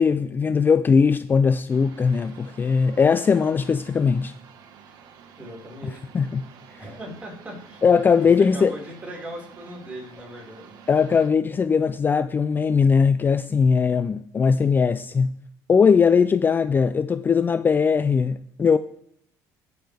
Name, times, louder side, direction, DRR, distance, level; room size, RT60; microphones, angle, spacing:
voice 1, 0.0-4.3 5.8-6.5 7.8-8.7 10.9-15.4 15.7-18.8, left 5 dB, 25° left, 0.3 m, -20 dB
sound 1, 1.7-11.3, right 7 dB, 65° right, 1.5 m, -49 dB
voice 2, 5.4-6.1 6.8-7.8 8.2-8.3 8.5-10.7, equal, 20° right, 4.7 m, -39 dB
16.0 x 6.9 x 3.4 m
supercardioid pair, 100°, 8 cm